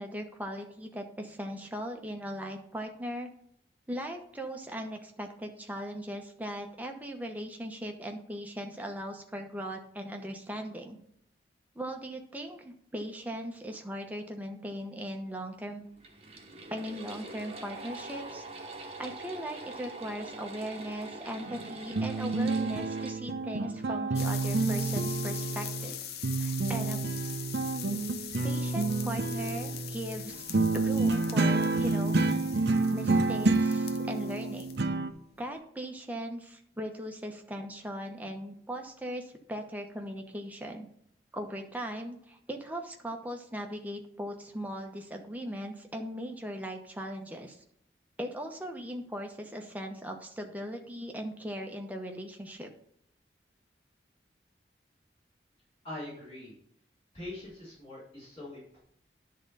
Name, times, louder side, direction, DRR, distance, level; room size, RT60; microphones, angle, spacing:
voice 1, 0.0-3.3 3.9-11.0 11.7-15.9 16.7-18.4 19.0-26.0 26.4-27.0 28.4-32.2 32.9-34.7 35.4-40.9 41.3-47.6 48.2-52.7, equal, 10° right, 2 dB, 0.9 m, -39 dB
sound 1, 16.0-23.1, right 2 dB, 35° right, 1.0 m, -44 dB
sound 2, 21.5-26.0 26.2-35.1, right 3 dB, 70° right, 0.6 m, -29 dB
sound 3, 24.1-34.9 35.2-35.5, left 10 dB, 60° left, 0.6 m, -42 dB
voice 2, 55.8-56.5 57.1-58.8, left 1 dB, 30° left, -8 dB, 3.4 m, -43 dB
10.5 x 3.7 x 5.4 m, 0.70 s
head